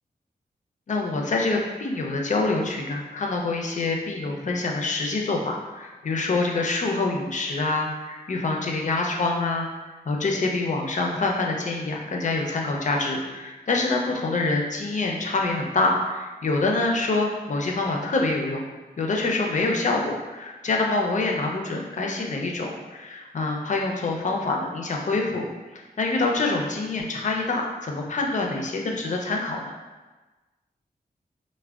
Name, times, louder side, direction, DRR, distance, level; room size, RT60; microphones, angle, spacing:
voice 1, 0.9-9.7 10.1-18.6 19.0-25.4 25.7-29.7, left 3 dB, 50° left, 0 dB, 0.4 m, -26 dB
3.3 x 2.1 x 2.3 m, 1.2 s
wide cardioid pair, 80°, 16 cm